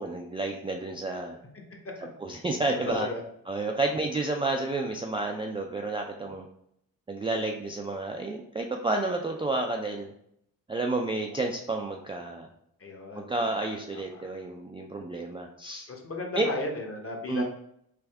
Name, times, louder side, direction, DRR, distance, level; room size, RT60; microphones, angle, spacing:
voice 1, 0.0-1.4 2.2-3.1 3.5-6.5 7.1-10.1 10.7-12.5 13.1-15.9 16.3-16.5 17.3-17.4, right 2 dB, 15° right, 1 dB, 0.3 m, -30 dB
voice 2, 2.9-3.2 12.8-14.2 15.9-17.4, left 2 dB, 35° left, 1 dB, 0.9 m, -36 dB
3.5 x 2.5 x 3.4 m, 0.73 s
supercardioid pair, 65°, 39 cm